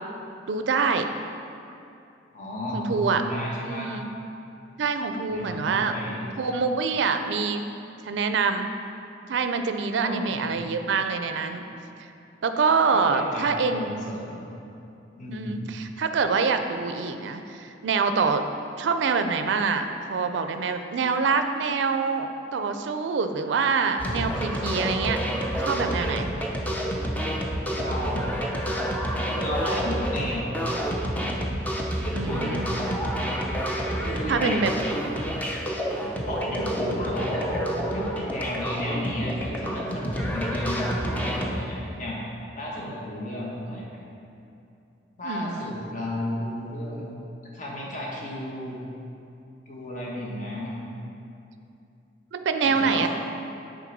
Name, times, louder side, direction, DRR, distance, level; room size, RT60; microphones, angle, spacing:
voice 1, 0.5-1.1 2.7-3.2 3.6-4.1 4.8-6.0 6.4-7.6 8.1-8.7 9.3-11.6 12.4-14.0 15.3-18.4 18.8-25.2 25.6-26.3 32.1-32.7 34.3-34.7 45.2-45.8 52.3-53.1, right 5 dB, 75° right, 7 dB, 0.4 m, -25 dB
voice 2, 2.3-3.9 5.3-6.4 10.0-10.5 12.9-14.5 15.2-15.8 27.6-28.3 29.3-30.7 32.0-32.9 34.0-34.7 36.3-42.2 42.5-43.9 45.2-47.1 47.5-48.8 49.7-50.8 52.6-53.1, left 1 dB, 45° left, -4 dB, 1.2 m, -33 dB
sound 1, 24.0-41.5, equal, 10° left, 0.6 m, -29 dB
7.5 x 3.8 x 5.2 m, 2.6 s
head